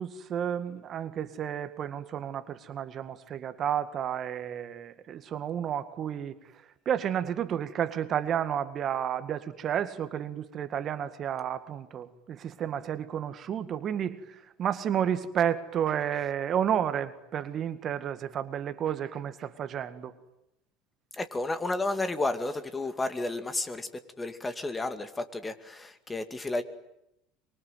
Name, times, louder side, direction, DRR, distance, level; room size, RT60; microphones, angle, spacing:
voice 1, 0.0-6.4 6.9-14.2 14.6-20.1, right 9 dB, 45° right, 11 dB, 1.9 m, -31 dB
voice 2, 21.1-23.9 24.2-26.6, left 2 dB, 15° left, 10 dB, 2.4 m, -32 dB
25.5 x 23.5 x 9.4 m, 0.85 s
hypercardioid pair, 80°, 0 cm